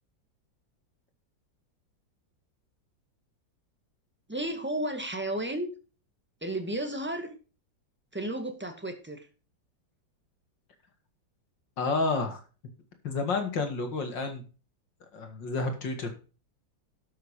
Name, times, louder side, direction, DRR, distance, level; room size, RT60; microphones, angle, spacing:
voice 1, 4.3-5.7 6.4-7.3 8.1-9.3, right 1 dB, 5° right, 6 dB, 1.9 m, -33 dB
voice 2, 11.8-12.4 13.0-14.4 15.1-16.1, left 3 dB, 70° left, 6 dB, 2.9 m, -30 dB
12.0 x 7.1 x 4.8 m, 0.35 s
omnidirectional pair, 2.0 m